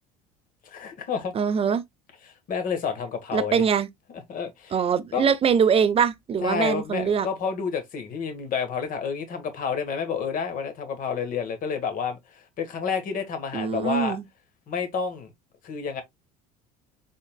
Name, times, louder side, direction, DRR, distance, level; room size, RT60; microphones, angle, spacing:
voice 1, 0.6-1.3 2.2-3.6 4.3-4.8 5.1-5.3 6.4-14.2 14.7-15.3 15.6-16.0, left 6 dB, 50° left, 1.3 m, -29 dB
voice 2, 1.3-1.8 3.3-3.9 4.7-7.3 13.5-14.2, right 7 dB, 30° right, 0.6 m, -23 dB
3.9 x 3.6 x 2.3 m
hypercardioid pair, 75°, 19 cm